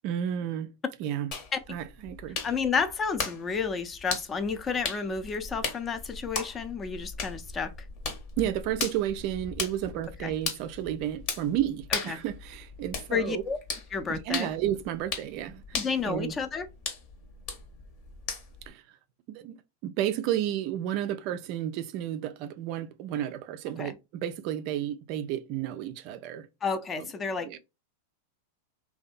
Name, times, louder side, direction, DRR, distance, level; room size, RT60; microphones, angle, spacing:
voice 1, 0.0-0.7 1.0-1.3 1.7-2.4 8.4-13.4 14.1-16.3 18.7-18.8 19.3-19.6 19.8-26.5 27.0-27.1 27.4-27.6, right 11 dB, 50° right, 0.3 m, -32 dB
sound 1, 1.3-18.7, left 4 dB, 45° left, 0.8 m, -38 dB
voice 2, 2.4-7.7 10.2-10.3 12.1-12.2 13.1-13.6 13.9-14.5 15.7-16.7 23.8-23.9 26.6-27.6, left 5 dB, 25° left, 0.4 m, -31 dB
2.6 x 2.2 x 2.4 m
hypercardioid pair, 105°, 0 cm